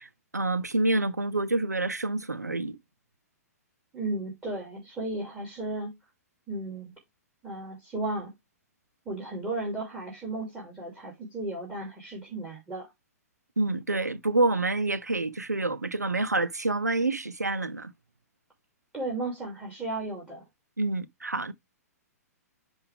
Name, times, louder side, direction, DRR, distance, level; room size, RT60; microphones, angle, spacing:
voice 1, 0.0-2.8 13.6-17.9 20.8-21.5, right 2 dB, 85° right, 0.6 m, -27 dB
voice 2, 3.9-5.9 6.5-6.9 7.4-8.3 9.0-12.9 18.9-20.4, right 2 dB, 15° right, 2.8 m, -34 dB
9.9 x 3.5 x 3.5 m
figure-of-eight pair, 115°, 9 cm